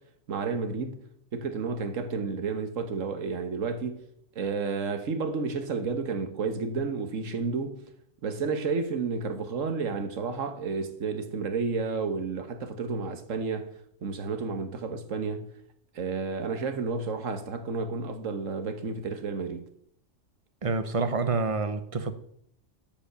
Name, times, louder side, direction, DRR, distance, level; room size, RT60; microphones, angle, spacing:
voice 1, 0.3-1.0 1.3-4.0 4.3-7.8 8.2-13.7 14.0-15.5 15.9-19.7, right 4 dB, 85° right, 1.6 m, -31 dB
voice 2, 20.6-22.1, right 3 dB, 30° right, 0.7 m, -27 dB
13.0 x 5.5 x 6.7 m
omnidirectional pair, 1.3 m